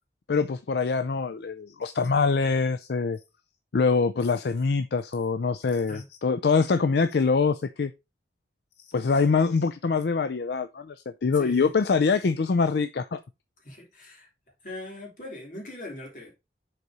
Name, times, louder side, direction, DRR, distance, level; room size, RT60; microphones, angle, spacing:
voice 1, 0.3-3.2 3.7-7.9 8.9-11.0 11.2-13.2, left 4 dB, 70° left, 0.4 m, -24 dB
voice 2, 11.3-11.7 13.6-14.3 14.6-16.3, left 1 dB, 45° left, 2.8 m, -40 dB
6.7 x 4.2 x 4.7 m
head